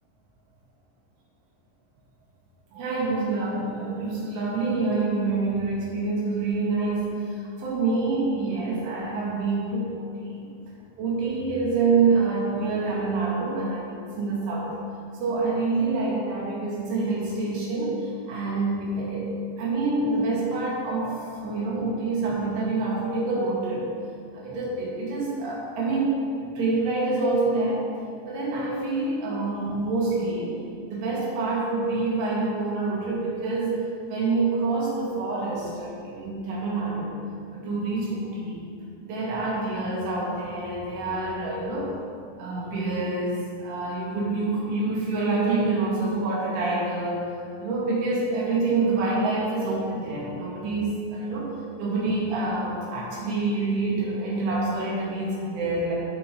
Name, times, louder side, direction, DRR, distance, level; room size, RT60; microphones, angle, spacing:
voice 1, 2.7-10.5 11.0-14.7 15.2-19.3 19.6-23.9 24.3-27.9 28.3-30.6 30.8-37.2 37.5-38.6 39.0-41.9 42.4-47.3 47.6-55.9, right 3 dB, 75° right, -6 dB, 4.6 m, -27 dB
15.5 x 6.1 x 3.9 m, 2.4 s
omnidirectional pair, 5.6 m